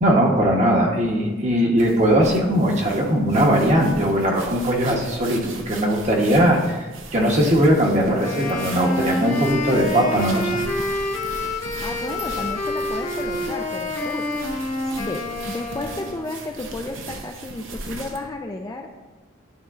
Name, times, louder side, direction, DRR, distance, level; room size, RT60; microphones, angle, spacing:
voice 1, 0.0-6.9 7.1-10.5, equal, 35° right, 0 dB, 1.0 m, -19 dB
sound 1, 1.8-18.3, right 3 dB, 80° right, 0.8 m, -38 dB
Wind instrument woodwind instrument, 8.2-16.3, left 2 dB, 35° left, 1.0 m, -28 dB
voice 2, 11.8-14.4 15.0-19.0, left 2 dB, 20° left, 2 dB, 0.3 m, -32 dB
11.0 x 4.2 x 2.5 m, 1.2 s
head